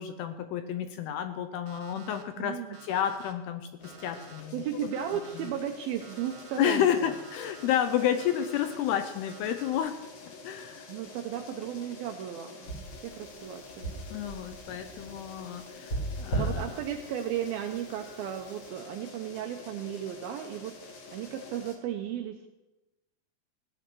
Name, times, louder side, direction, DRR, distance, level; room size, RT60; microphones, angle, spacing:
voice 1, 0.0-4.9 5.4-5.5 6.6-10.9 14.1-16.6, left 10 dB, 75° left, 8 dB, 2.5 m, -31 dB
Alarm, 1.7-2.2 2.7-3.3 3.8-4.4 4.9-5.5 6.0-6.6 7.1-7.7 8.2-8.8 9.3-9.8, right 7 dB, 65° right, 1.9 m, -51 dB
voice 2, 2.4-2.8 4.5-7.1 10.9-12.7 13.0-13.9 16.3-22.5, right 10 dB, 80° right, 5 dB, 2.1 m, -35 dB
sound 1, 3.8-21.8, left 3 dB, 60° left, 3.3 m, -48 dB
sound 2, 12.7-17.8 18.1-18.6, right 2 dB, 30° left, 2.5 m, -37 dB
16.5 x 10.0 x 6.2 m, 1.0 s
omnidirectional pair, 5.2 m